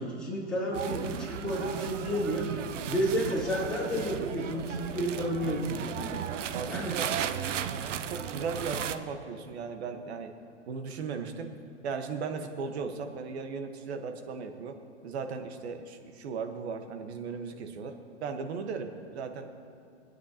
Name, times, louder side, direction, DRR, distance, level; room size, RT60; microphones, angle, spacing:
voice 1, 0.0-2.5 2.9-6.2 6.7-7.0, equal, ahead, -9 dB, 3.4 m, -31 dB
sound 1, 0.7-9.0, right 8 dB, 85° right, 0.7 m, -35 dB
voice 2, 6.5-10.3 10.7-11.5 11.8-14.8 15.0-17.9 18.2-19.5, right 5 dB, 60° right, 6 dB, 1.3 m, -37 dB
24.5 x 9.6 x 2.9 m, 2.4 s
hypercardioid pair, 145°, 36 cm